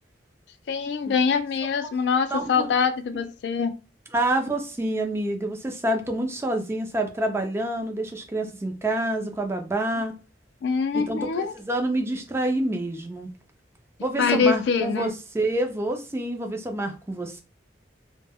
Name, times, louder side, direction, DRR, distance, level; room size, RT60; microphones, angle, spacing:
voice 1, 0.7-3.7 10.6-11.5 14.2-15.1, left 5 dB, 65° left, 0.3 m, -24 dB
voice 2, 2.3-2.7 4.1-10.1 10.9-13.3 14.0-17.4, right 1 dB, 15° right, 0.4 m, -27 dB
2.1 x 2.1 x 3.4 m
head